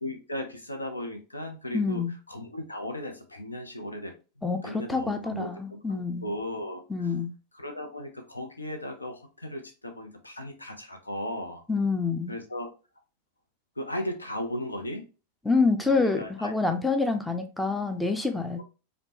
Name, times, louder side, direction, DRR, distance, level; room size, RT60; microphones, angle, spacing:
voice 1, 0.0-2.0 2.3-4.1 4.6-7.1 7.5-11.6 12.3-12.7 13.8-15.0 15.9-16.5 18.6-18.7, left 1 dB, 80° left, 0.7 m, -36 dB
voice 2, 1.7-2.1 4.4-6.3 6.9-7.3 11.7-12.3 15.4-18.6, left 4 dB, 5° left, 0.4 m, -27 dB
5.0 x 2.2 x 2.9 m
figure-of-eight pair, 90°, 0 cm